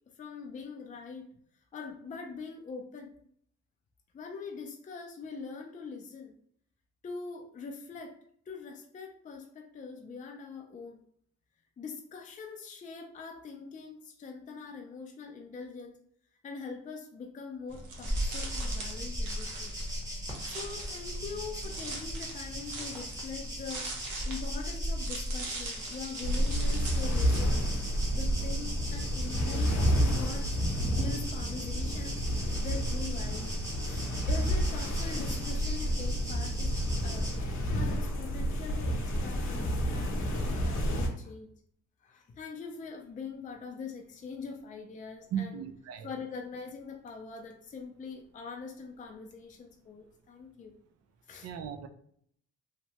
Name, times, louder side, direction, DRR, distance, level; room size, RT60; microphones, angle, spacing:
voice 1, 0.2-1.3 1.7-3.2 4.1-6.3 7.0-8.1 8.5-11.0 11.8-16.0 16.4-19.8 20.5-23.9 24.3-27.7 28.1-30.5 30.8-33.5 33.8-37.3 37.7-41.5 42.0-45.6 46.0-50.7 51.3-51.5, left 5 dB, 25° left, 2 dB, 0.4 m, -43 dB
sound 1, 17.7-27.4, right 2 dB, 75° right, 0.9 m, -42 dB
sound 2, 18.1-37.4, equal, 10° right, 0.9 m, -38 dB
sound 3, 26.2-41.1, equal, 70° left, 0.8 m, -30 dB
voice 2, 45.3-46.1 51.4-51.9, right 8 dB, 55° right, 8 dB, 0.4 m, -36 dB
2.9 x 2.2 x 2.8 m, 0.64 s
cardioid pair, 90°, 30 cm